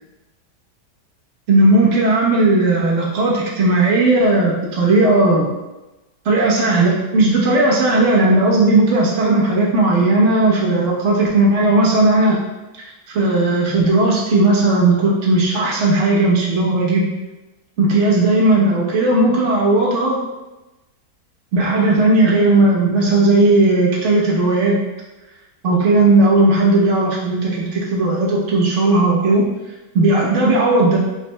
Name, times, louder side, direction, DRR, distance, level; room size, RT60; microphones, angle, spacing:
voice 1, 1.5-5.6 6.2-12.4 13.1-17.2 17.8-20.2 21.5-24.8 25.6-29.5 29.9-31.0, right 2 dB, 50° right, -4 dB, 1.1 m, -15 dB
4.6 x 4.3 x 2.2 m, 1.1 s
omnidirectional pair, 1.8 m